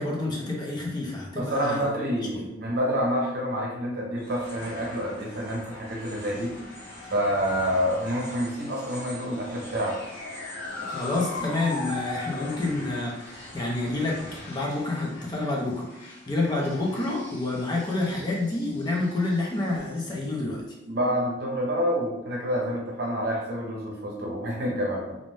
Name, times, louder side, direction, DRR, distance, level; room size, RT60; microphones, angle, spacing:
voice 1, 0.0-1.8 2.3-2.5 10.9-14.2 14.5-20.6, left 2 dB, 25° left, -2 dB, 0.5 m, -28 dB
voice 2, 1.4-6.5 7.1-10.0 20.9-25.2, equal, 55° right, -2 dB, 0.7 m, -28 dB
sound 1, 4.2-20.6, left 2 dB, 65° left, 1.1 m, -41 dB
2.5 x 2.1 x 3.2 m, 0.94 s
head